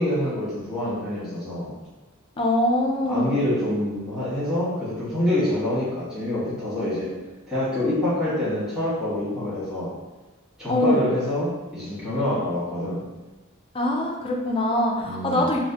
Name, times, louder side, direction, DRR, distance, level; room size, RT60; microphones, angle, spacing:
voice 1, 0.0-1.7 3.1-7.1 7.5-10.0 10.6-13.0 15.0-15.5, left 1 dB, 5° right, -11 dB, 1.4 m, -26 dB
voice 2, 2.4-3.4 10.7-11.1 13.7-15.6, left 1 dB, 25° left, 0 dB, 0.4 m, -23 dB
4.0 x 2.1 x 2.8 m, 1.1 s
head